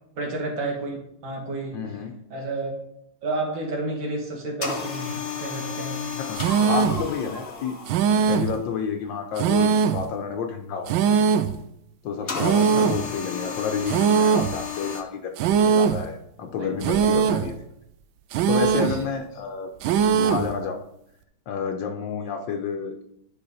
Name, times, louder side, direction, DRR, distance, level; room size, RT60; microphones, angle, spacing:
voice 1, 0.2-1.0 1.2-1.8 2.3-2.7 3.2-6.0 12.7-13.0 16.6-17.4 18.9-19.0, right 2 dB, 75° right, 0 dB, 2.5 m, -31 dB
voice 2, 1.7-2.1 6.2-7.7 8.3-11.0 12.0-15.3 15.6-17.5 18.5-19.7 20.1-20.8 21.5-23.0, left 6 dB, 75° left, 4 dB, 1.4 m, -30 dB
sound 1, 4.6-8.5 12.3-15.0, left 6 dB, 40° left, 1.0 m, -33 dB
sound 2, 6.4-7.1 7.9-8.6 9.4-10.1 10.9-11.6 12.4-13.1 13.9-14.6 15.4-16.1 16.8-17.5 18.3-19.0 19.8-20.5, right 7 dB, 90° right, 1.4 m, -21 dB
10.0 x 5.5 x 4.1 m, 0.76 s
omnidirectional pair, 2.1 m